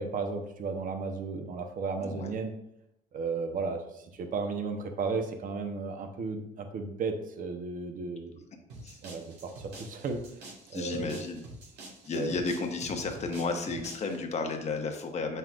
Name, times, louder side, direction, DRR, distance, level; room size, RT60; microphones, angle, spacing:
voice 1, 0.0-2.5 3.1-8.4 8.7-10.2 10.7-11.2 12.1-12.3, right 4 dB, 55° right, 5 dB, 0.9 m, -34 dB
voice 2, 2.0-2.3 8.8-9.0 10.7-11.4 12.0-15.4, left 3 dB, 40° left, 4 dB, 1.1 m, -33 dB
sound 1, 8.7-14.2, right 2 dB, 85° right, 1.7 m, -47 dB
7.3 x 5.6 x 2.5 m, 0.81 s
cardioid pair, 110°, 17 cm